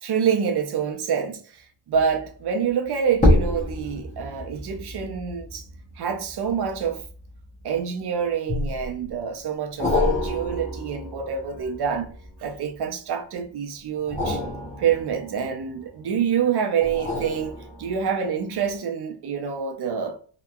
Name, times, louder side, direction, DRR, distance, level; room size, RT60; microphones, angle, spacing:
voice 1, 0.0-5.6 6.0-7.0 7.6-12.1 12.4-14.4 14.8-20.2, right 7 dB, 50° right, 0.6 m, -27 dB
sound 1, 1.9-2.3 3.1-7.8 8.5-9.1 9.8-12.8 14.0-16.1 16.8-18.2 18.7-18.8, left 1 dB, 15° left, 0.7 m, -28 dB
2.8 x 2.2 x 2.2 m
wide cardioid pair, 145°, 49 cm